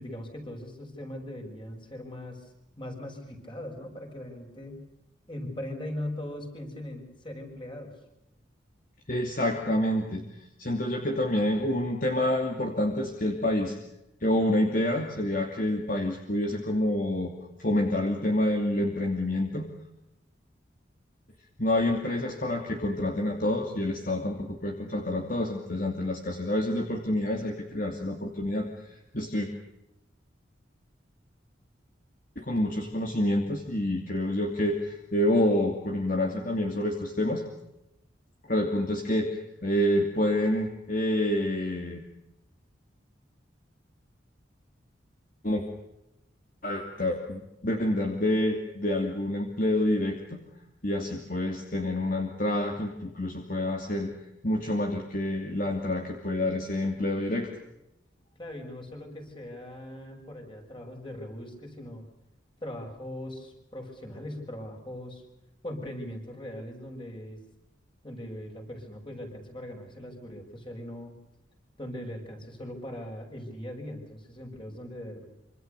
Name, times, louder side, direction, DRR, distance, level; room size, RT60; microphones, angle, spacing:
voice 1, 0.0-2.5 2.8-4.8 5.3-7.9 58.4-62.0 62.6-65.2 65.6-67.4 68.0-71.1 71.8-75.2, left 1 dB, 25° left, 3 dB, 6.4 m, -40 dB
voice 2, 9.1-10.2 10.6-13.8 14.2-17.3 17.6-19.7 21.6-29.5 32.4-37.4 38.5-42.0 45.4-45.6 46.6-50.4 50.8-54.1 54.4-57.5, left 1 dB, 45° left, 3 dB, 2.7 m, -28 dB
26.5 x 26.0 x 6.8 m, 0.88 s
head